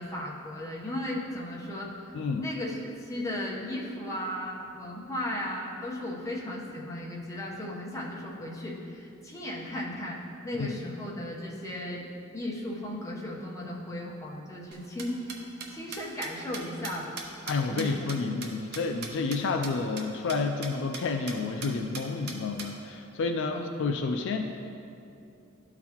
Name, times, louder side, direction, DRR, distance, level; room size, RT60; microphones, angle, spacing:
voice 1, 0.0-1.9 2.4-12.1 12.3-15.4 15.7-17.2 17.7-18.1 23.5-23.7, left 1 dB, 15° left, -4 dB, 0.9 m, -36 dB
voice 2, 2.1-2.4 10.6-10.8 17.5-24.4, left 4 dB, 65° left, 5 dB, 0.4 m, -30 dB
sound 1, 14.7-19.4 19.6-19.7 20.0-20.1 20.3-20.4 20.6-21.0 21.3-21.4 21.6-22.7, right 5 dB, 55° right, 0.8 m, -39 dB
12.0 x 4.0 x 2.9 m, 2.6 s
head